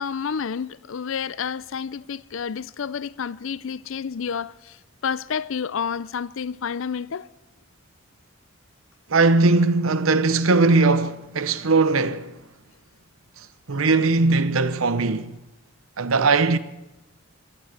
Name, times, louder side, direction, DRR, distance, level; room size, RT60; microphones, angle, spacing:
voice 1, 0.0-4.8 5.0-7.3, left 6 dB, 70° left, 0.5 m, -30 dB
voice 2, 9.1-12.3 13.7-15.3 16.0-16.6, right 3 dB, 85° right, 0.8 m, -19 dB
16.0 x 11.5 x 7.9 m
head